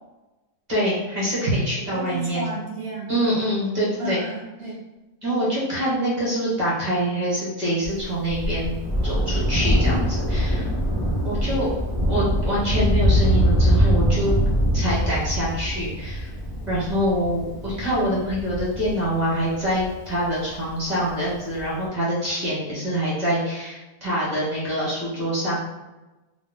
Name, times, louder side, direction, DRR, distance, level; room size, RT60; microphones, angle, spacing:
voice 1, 0.7-2.5 3.1-4.2 5.2-8.8 9.0-10.7 11.2-11.7 12.1-14.3 14.7-16.3 16.7-25.6, equal, 35° right, -7 dB, 0.9 m, -25 dB
voice 2, 1.9-3.1 4.0-4.8, equal, 65° right, -3 dB, 0.6 m, -32 dB
Thunder, 7.8-20.7 21.6-21.7, equal, 40° left, 0.5 m, -23 dB
2.5 x 2.0 x 3.4 m, 1.1 s
omnidirectional pair, 1.6 m